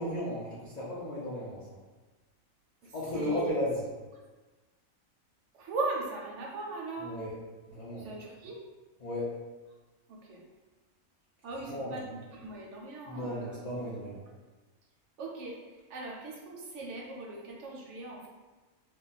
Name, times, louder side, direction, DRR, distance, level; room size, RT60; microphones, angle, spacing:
voice 1, 0.0-1.7 2.9-3.8 7.0-7.3 7.7-8.1 9.0-9.3 11.7-12.0 13.1-14.2, left 1 dB, 60° left, -8 dB, 0.4 m, -35 dB
voice 2, 2.8-3.7 5.5-7.1 8.0-8.6 10.1-10.4 11.4-13.6 15.2-18.3, right 3 dB, 70° right, -2 dB, 0.8 m, -39 dB
2.3 x 2.2 x 3.8 m, 1.2 s
omnidirectional pair, 1.4 m